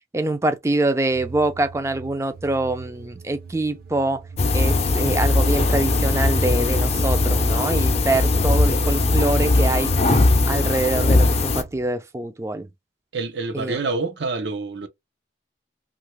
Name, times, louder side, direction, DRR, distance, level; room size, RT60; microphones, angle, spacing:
voice 1, 0.1-4.2 4.5-9.9 10.5-12.7 13.5-13.8, right 2 dB, 15° right, 0.4 m, -24 dB
sound 1, 1.1-11.9, right 4 dB, 55° right, 0.6 m, -42 dB
sound 2, 4.4-11.6, left 2 dB, 35° left, 0.5 m, -19 dB
voice 2, 13.1-14.9, right 3 dB, 90° right, 0.8 m, -27 dB
2.8 x 2.5 x 3.1 m
head